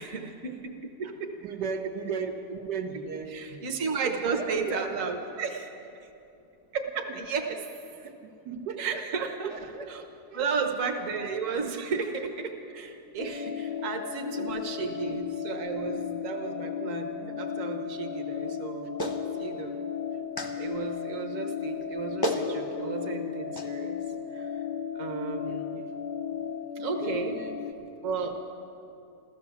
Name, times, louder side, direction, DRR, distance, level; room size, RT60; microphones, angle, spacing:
voice 1, 0.0-1.3 3.3-5.7 6.7-7.7 8.8-10.0 10.3-19.9 20.6-24.0 24.3-24.6 24.9-25.8 26.8-27.4 28.0-28.4, right 5 dB, 50° right, 4 dB, 1.4 m, -33 dB
voice 2, 1.4-3.7 4.0-5.1 7.1-7.2 8.0-9.0 9.4-9.9 10.3-10.5 11.2-11.7 13.4-13.5 14.3-14.6 25.4-25.8 27.0-27.9, right 5 dB, 75° right, 3 dB, 1.6 m, -37 dB
sound 1, 13.2-27.7, left 8 dB, 75° left, 1.3 m, -35 dB
Clapping, 19.0-19.2 20.4-20.5 21.8-21.9 22.2-22.5 23.5-23.7, equal, 20° left, 0.7 m, -30 dB
15.0 x 13.5 x 7.1 m, 2.8 s
omnidirectional pair, 1.8 m